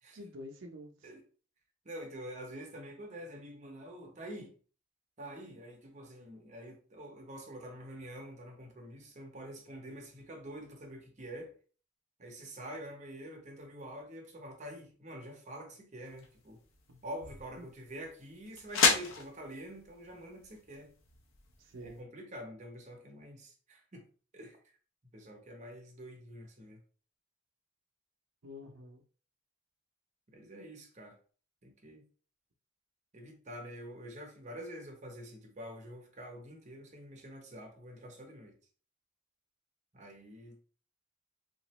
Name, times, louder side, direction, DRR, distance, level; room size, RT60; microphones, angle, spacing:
voice 1, 0.1-1.1 16.9-17.0 17.6-17.7 21.6-22.0 28.4-29.0, left 1 dB, 70° right, 0.6 m, -48 dB
voice 2, 1.8-4.5 5.2-11.5 12.2-16.6 17.0-20.9 21.8-24.0 24.3-24.6 25.1-26.8 30.3-31.2 31.6-32.0 33.1-38.6 39.9-40.6, equal, 35° right, 0.8 m, -46 dB
sound 1, 16.1-22.0, left 5 dB, 85° left, 0.6 m, -34 dB
2.9 x 2.5 x 3.0 m
head